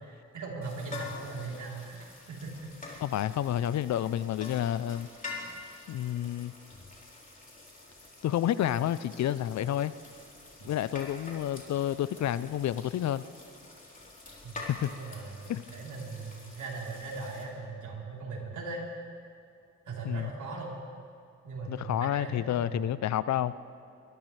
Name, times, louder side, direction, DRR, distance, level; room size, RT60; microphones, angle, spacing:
voice 1, 0.0-3.0 10.6-10.7 14.4-18.8 19.9-20.8 21.4-22.9, right 4 dB, 70° right, -3 dB, 3.6 m, -40 dB
sound 1, 0.6-17.4, left 3 dB, 25° left, 3.6 m, -46 dB
voice 2, 3.0-5.1 5.9-6.5 8.2-9.9 10.6-13.2 14.7-14.9 15.5-15.6 20.0-20.3 21.7-23.5, left 11 dB, 60° left, 16 dB, 0.5 m, -29 dB
22.0 x 13.0 x 3.3 m, 2.5 s
supercardioid pair, 60°, 31 cm